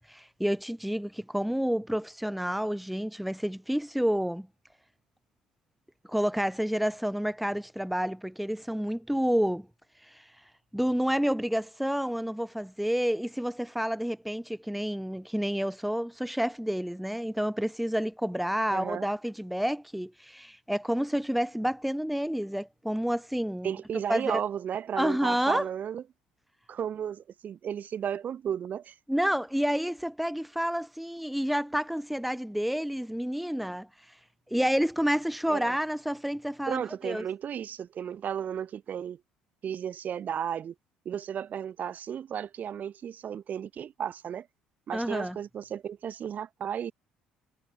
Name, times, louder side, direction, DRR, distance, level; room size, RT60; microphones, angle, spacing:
voice 1, 0.1-4.5 6.1-9.7 10.1-10.3 10.7-23.7 24.1-24.4 25.0-25.7 29.1-33.9 34.5-37.3 44.9-45.4, equal, ahead, 3.5 m, -29 dB
voice 2, 18.7-19.1 23.6-26.0 26.7-28.9 35.5-35.7 36.7-39.2 39.6-40.7 41.0-44.5 44.9-46.9, right 9 dB, 50° right, 6.0 m, -34 dB
hypercardioid pair, 60°, 4 cm